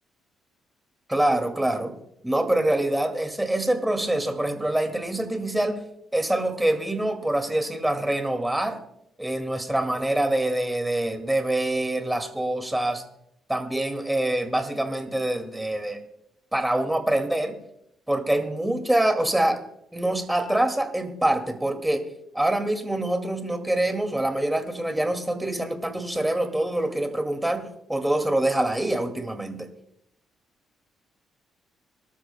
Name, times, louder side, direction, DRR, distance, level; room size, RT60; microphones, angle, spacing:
voice 1, 1.1-1.9 2.2-5.8 6.1-8.8 9.2-13.0 13.5-16.0 16.5-17.6 18.1-19.6 19.9-22.0 22.3-29.7, right 1 dB, 10° right, 6 dB, 2.2 m, -25 dB
25.0 x 13.0 x 2.2 m, 0.77 s
cardioid pair, 90°, 0 cm